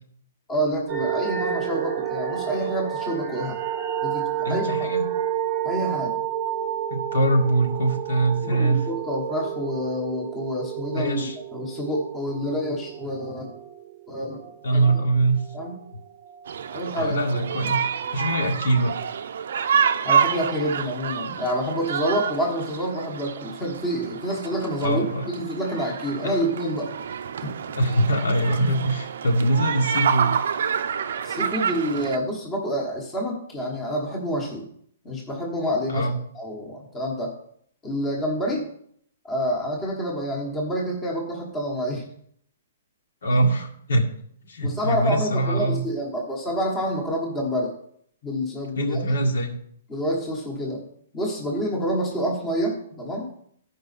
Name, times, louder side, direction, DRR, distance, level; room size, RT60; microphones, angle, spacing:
voice 1, 0.5-3.6 4.0-4.9 5.6-6.2 8.4-13.5 14.1-14.4 14.7-14.9 15.5-15.8 16.7-17.1 20.0-26.9 27.4-27.6 31.2-34.7 35.0-36.1 36.3-37.3 37.8-38.6 39.2-42.1 44.6-47.7 48.2-49.0 49.9-50.8 51.1-53.3, equal, 10° left, -1 dB, 1.1 m, -28 dB
sound 1, 0.9-15.8 16.1-17.5 18.0-18.1, right 10 dB, 25° right, 0.7 m, -30 dB
voice 2, 4.4-5.0 6.9-8.9 10.9-11.4 14.6-15.4 17.0-17.8 18.1-18.9 24.8-25.3 27.7-30.3 35.9-36.2 43.2-44.0 44.5-45.8 48.8-49.5, right 2 dB, 80° left, 2 dB, 1.9 m, -23 dB
sound 2, 16.5-32.2, right 7 dB, 55° right, 0.5 m, -28 dB
14.0 x 5.2 x 4.1 m, 0.66 s
hypercardioid pair, 175°, 0 cm